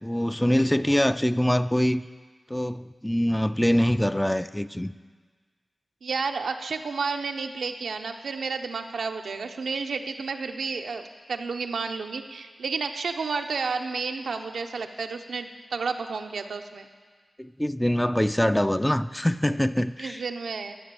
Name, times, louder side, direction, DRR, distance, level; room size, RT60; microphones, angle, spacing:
voice 1, 0.0-2.0 2.5-4.9 17.4-20.2, equal, 10° left, 12 dB, 0.4 m, -24 dB
voice 2, 6.0-16.9 20.0-20.7, right 4 dB, 90° right, 5 dB, 0.7 m, -31 dB
12.0 x 6.8 x 7.8 m, 1.5 s
cardioid pair, 60°, 0 cm